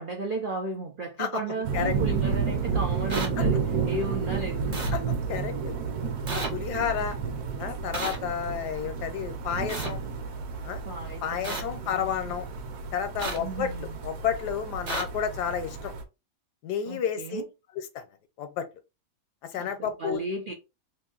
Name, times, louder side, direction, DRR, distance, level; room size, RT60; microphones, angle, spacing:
voice 1, 0.0-4.9 10.9-12.1 13.4-14.0 16.8-17.4 19.5-20.5, right 3 dB, 90° right, 0.4 m, -35 dB
sound 1, 1.6-16.0, right 5 dB, 65° right, 1.2 m, -31 dB
sound 2, 3.1-3.3 4.7-4.9 6.3-6.5 7.9-8.2 9.7-9.9 11.4-11.6 13.2-13.4 14.9-15.0, right 3 dB, 40° right, 0.6 m, -32 dB
voice 2, 5.3-5.7 6.3-7.2 7.6-10.0 10.6-10.8 11.2-12.4 12.9-15.9 16.6-17.4 17.8-18.0 18.4-18.6 19.5-20.2, left 8 dB, 70° left, 1.2 m, -31 dB
3.1 x 2.6 x 3.7 m
omnidirectional pair, 1.9 m